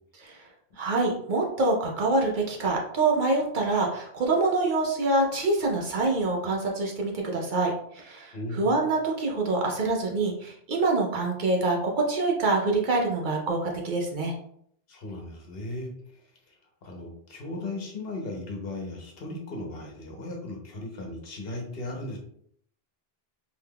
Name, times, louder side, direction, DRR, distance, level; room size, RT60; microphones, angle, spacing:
voice 1, 0.8-14.3, right 2 dB, 55° right, 0 dB, 0.7 m, -26 dB
voice 2, 8.3-8.9 14.9-16.5 16.8-22.2, left 2 dB, 70° left, 1 dB, 1.0 m, -37 dB
3.4 x 2.8 x 2.2 m, 0.67 s
omnidirectional pair, 1.0 m